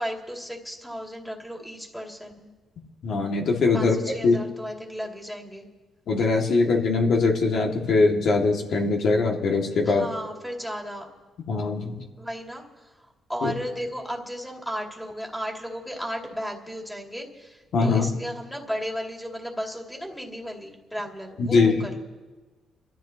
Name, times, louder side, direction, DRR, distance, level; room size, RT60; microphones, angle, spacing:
voice 1, 0.0-2.5 3.7-5.7 9.8-11.1 12.2-12.9 13.3-22.0, equal, ahead, 0 dB, 2.5 m, -34 dB
voice 2, 3.0-4.0 4.2-4.4 6.1-10.1 11.5-12.0 13.4-13.5 17.7-18.1 21.4-21.8, left 3 dB, 65° left, -1 dB, 2.1 m, -22 dB
29.0 x 13.5 x 2.9 m, 1.3 s
cardioid pair, 90°, 0 cm